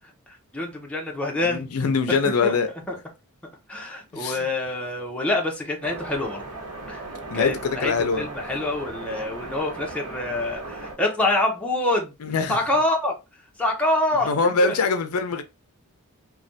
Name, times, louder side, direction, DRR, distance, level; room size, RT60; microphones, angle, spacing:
voice 1, 0.3-2.6 2.9-3.0 3.7-6.4 6.9-7.0 7.3-12.1 12.5-13.1 13.6-14.7, left 2 dB, 5° left, 0.6 m, -26 dB
voice 2, 1.4-2.7 4.1-4.5 7.3-8.2 12.2-12.6 14.3-15.4, left 4 dB, 75° left, 0.5 m, -23 dB
sound 1, 5.8-10.9, right 2 dB, 85° right, 1.0 m, -37 dB
3.2 x 2.2 x 2.6 m
head